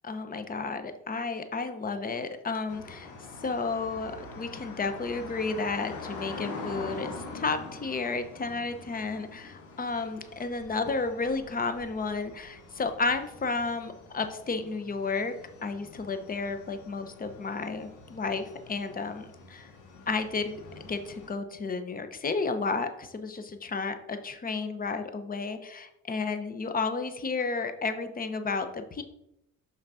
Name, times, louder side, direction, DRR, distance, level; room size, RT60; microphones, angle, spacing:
voice 1, 0.0-3.1 3.4-15.3 15.6-19.7 20.1-20.6 20.9-29.0, left 4 dB, 30° left, 9 dB, 0.8 m, -32 dB
sound 1, 2.7-21.3, left 3 dB, 85° left, 1.3 m, -45 dB
5.7 x 4.1 x 5.5 m, 0.82 s
cardioid pair, 90°, 30 cm